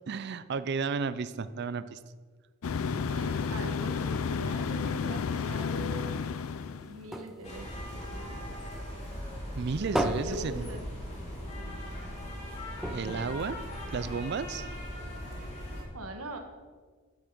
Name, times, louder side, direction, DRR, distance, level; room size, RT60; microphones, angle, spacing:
voice 1, 0.1-2.0 9.6-10.8 12.9-13.6 13.9-14.7, right 5 dB, 50° right, 14 dB, 0.4 m, -33 dB
sound 1, 2.6-7.1, left 5 dB, 75° left, 0.5 m, -31 dB
voice 2, 3.1-6.1 6.7-8.5 9.8-10.8 11.6-11.8 15.6-16.4, right 1 dB, 90° right, 5 dB, 1.4 m, -43 dB
sound 2, 6.2-8.9 9.2-11.5 11.8-11.9 12.2-12.3 12.8-14.3 14.9-15.0, right 1 dB, ahead, 0.5 m, -36 dB
sound 3, 7.4-15.8, equal, 30° left, 2.3 m, -39 dB
10.0 x 6.3 x 5.9 m, 1.5 s
head